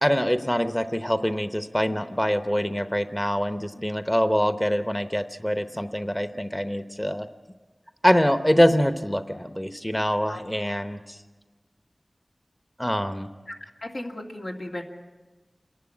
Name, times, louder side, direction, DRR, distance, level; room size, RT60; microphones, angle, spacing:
voice 1, 0.0-7.3 8.0-11.2 12.8-13.3, equal, 10° left, 9 dB, 0.9 m, -24 dB
voice 2, 13.5-14.8, left 1 dB, 75° left, 0 dB, 2.5 m, -35 dB
27.5 x 11.0 x 8.7 m, 1.3 s
wide cardioid pair, 55°, 0 cm